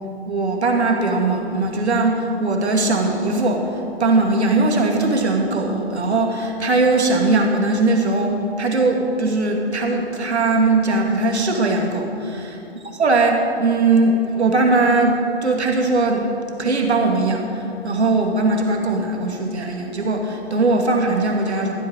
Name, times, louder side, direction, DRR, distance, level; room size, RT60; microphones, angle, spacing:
voice 1, 0.3-3.7 4.0-12.6 12.9-16.3 16.6-21.7, right 3 dB, 85° right, 1 dB, 2.4 m, -20 dB
13.5 x 8.7 x 6.5 m, 2.9 s
hypercardioid pair, 130°, 32 cm